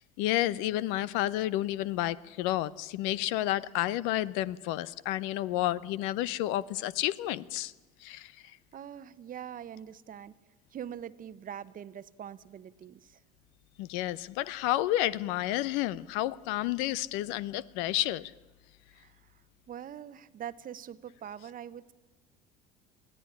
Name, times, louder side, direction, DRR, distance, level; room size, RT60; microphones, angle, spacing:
voice 1, 0.2-7.7 8.0-8.3 13.8-18.3, left 15 dB, 75° left, 0.7 m, -30 dB
voice 2, 8.7-10.3 10.7-13.2 18.9-19.4 19.7-21.9, right 9 dB, 45° right, 1.0 m, -43 dB
21.0 x 15.5 x 10.0 m
hypercardioid pair, 80°, 20 cm